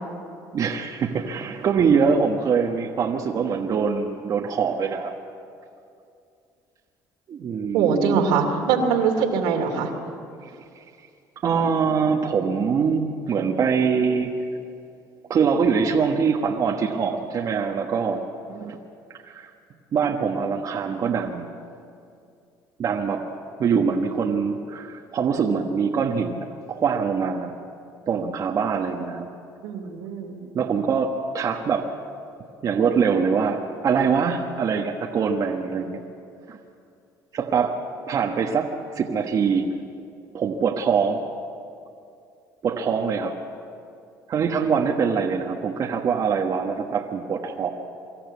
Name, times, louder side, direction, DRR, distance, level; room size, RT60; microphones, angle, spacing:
voice 1, 0.5-5.1 7.3-8.2 11.4-14.3 15.3-18.2 18.5-18.8 19.3-19.5 19.9-21.4 22.8-23.2 23.6-27.6 28.1-29.3 30.5-31.9 32.6-36.0 36.5-36.6 37.3-37.8 38.1-38.7 38.9-39.7 40.3-41.2 42.6-43.4 44.3-47.7, right 6 dB, 50° right, 1 dB, 1.4 m, -23 dB
voice 2, 7.7-9.9 29.6-30.4, right 6 dB, 85° right, 3 dB, 2.7 m, -22 dB
24.5 x 13.5 x 8.4 m, 2.5 s
supercardioid pair, 95°, 8 cm